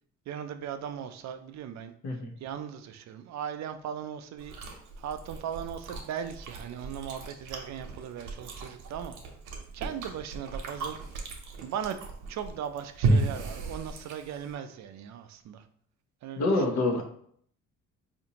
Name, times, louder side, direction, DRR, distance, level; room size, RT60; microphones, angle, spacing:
voice 1, 0.3-1.9 2.4-4.6 5.0-9.2 9.7-11.0 11.6-12.0 12.3-15.6 16.2-16.8, right 8 dB, 65° right, 9 dB, 0.4 m, -38 dB
Chewing mastication, 4.4-14.5, right 3 dB, 85° right, 0.8 m, -34 dB
voice 2, 16.4-17.0, left 2 dB, 65° left, 1 dB, 0.9 m, -26 dB
4.3 x 2.5 x 2.8 m, 0.64 s
cardioid pair, 90°, 30 cm